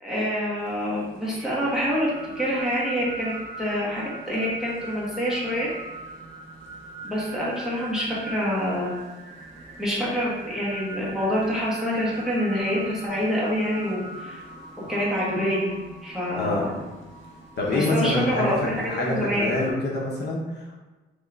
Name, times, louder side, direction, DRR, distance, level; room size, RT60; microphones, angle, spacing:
voice 1, 0.0-3.3 3.6-5.7 7.0-8.9 9.8-14.5 14.8-16.7 17.7-19.5, equal, ahead, -8 dB, 1.4 m, -26 dB
sound 1, 0.6-19.7, right 2 dB, 65° right, 1.3 m, -41 dB
voice 2, 17.6-20.8, left 2 dB, 55° left, -2 dB, 0.8 m, -26 dB
3.6 x 3.1 x 3.9 m, 1.2 s
cardioid pair, 125°, 21 cm